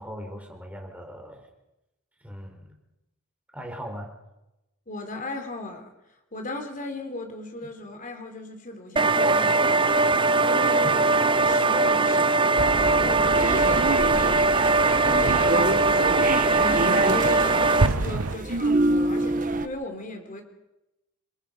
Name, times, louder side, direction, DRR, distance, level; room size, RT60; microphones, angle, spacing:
voice 1, 0.0-1.4 2.2-2.8 3.5-4.1 10.8-11.1, equal, 5° right, 4.6 m, -38 dB
voice 2, 4.9-5.9 6.3-9.9 10.4-11.0 11.4-20.4, left 1 dB, 40° left, 3.8 m, -36 dB
sound 1, 9.0-17.9, right 3 dB, 25° right, 0.7 m, -21 dB
sound 2, 12.6-18.4, right 2 dB, 85° right, 1.2 m, -31 dB
sound 3, 13.3-19.7, right 2 dB, 40° right, 1.3 m, -27 dB
28.0 x 22.0 x 5.5 m
head